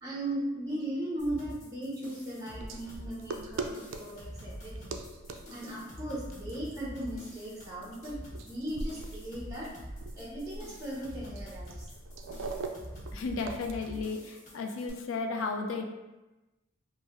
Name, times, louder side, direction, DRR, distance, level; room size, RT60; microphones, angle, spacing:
voice 1, 0.0-4.9 5.5-9.7 10.1-11.8, right 1 dB, 15° right, -5 dB, 0.5 m, -37 dB
sound 1, 1.2-14.9, equal, 35° left, 0.7 m, -46 dB
sound 2, 2.6-13.7, right 3 dB, 75° right, 0.3 m, -42 dB
voice 2, 13.1-15.8, left 4 dB, 80° left, 4 dB, 0.4 m, -34 dB
2.7 x 2.0 x 3.4 m, 1.1 s
head